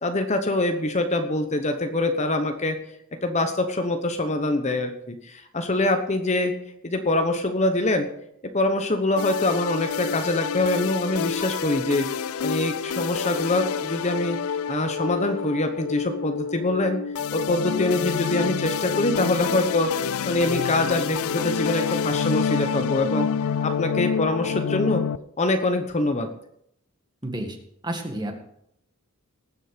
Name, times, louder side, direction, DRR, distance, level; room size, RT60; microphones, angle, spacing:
voice 1, 0.0-2.8 3.2-6.5 6.8-8.1 8.5-17.0 17.3-19.9 20.2-23.3 23.6-25.0 25.4-26.3, left 2 dB, 30° left, 6 dB, 1.0 m, -24 dB
sound 1, 9.2-25.2, left 7 dB, 80° left, 0.4 m, -28 dB
voice 2, 27.2-27.6 27.8-28.3, right 1 dB, 20° right, 3 dB, 1.9 m, -30 dB
19.0 x 7.5 x 5.1 m, 0.73 s
head